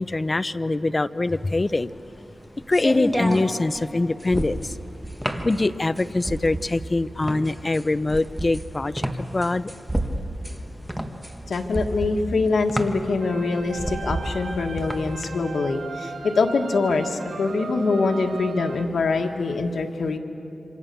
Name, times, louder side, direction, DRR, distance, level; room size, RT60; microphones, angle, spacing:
voice 1, 0.0-1.9 2.7-4.7 5.4-9.7, left 2 dB, 25° left, 14 dB, 0.5 m, -23 dB
sound 1, 1.4-15.2, right 1 dB, 5° right, 1.4 m, -30 dB
voice 2, 11.5-20.2, left 3 dB, 85° left, 3 dB, 1.7 m, -24 dB
Hope of Rebels, 13.2-18.8, right 4 dB, 75° right, 1.2 m, -37 dB
27.5 x 25.5 x 6.9 m, 3.0 s
wide cardioid pair, 130°, 0 cm